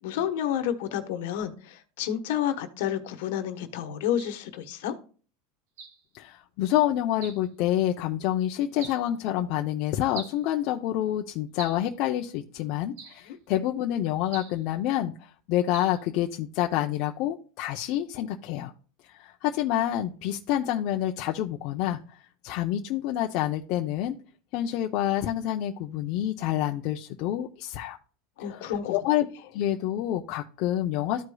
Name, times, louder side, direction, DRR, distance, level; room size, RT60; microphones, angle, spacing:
voice 1, 0.0-4.9 13.2-13.4 28.4-28.9, left 10 dB, 75° left, 7 dB, 1.1 m, -30 dB
sound 1, 4.2-4.4 5.8-6.0 7.2-7.5 8.8-9.1 10.1-10.4 11.6-11.9 13.0-13.3 14.3-14.6 15.7-16.0, right 5 dB, 75° right, 1.4 m, -42 dB
voice 2, 6.1-18.7 19.0-22.2 22.4-24.1 24.5-28.0 28.6-28.7 28.9-29.3 29.5-31.2, left 12 dB, 55° left, 2 dB, 0.6 m, -28 dB
14.0 x 4.8 x 2.3 m, 0.40 s
supercardioid pair, 130°, 0 cm